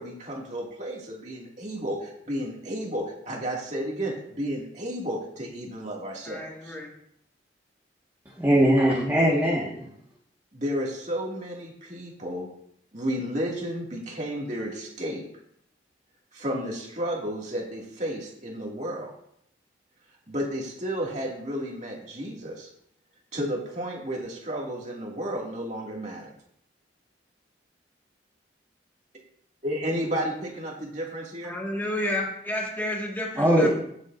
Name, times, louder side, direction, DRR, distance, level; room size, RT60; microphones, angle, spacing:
voice 1, 0.0-6.8 10.5-12.5 12.9-15.3 16.3-19.1 20.3-22.7 23.3-26.3 29.6-31.5, equal, 40° right, -2 dB, 2.3 m, -32 dB
voice 2, 6.3-6.9 31.4-33.7, left 1 dB, 10° left, -3 dB, 1.8 m, -31 dB
voice 3, 8.4-9.8 33.4-33.7, equal, 15° right, -6 dB, 1.6 m, -20 dB
16.0 x 7.3 x 2.6 m, 0.70 s
head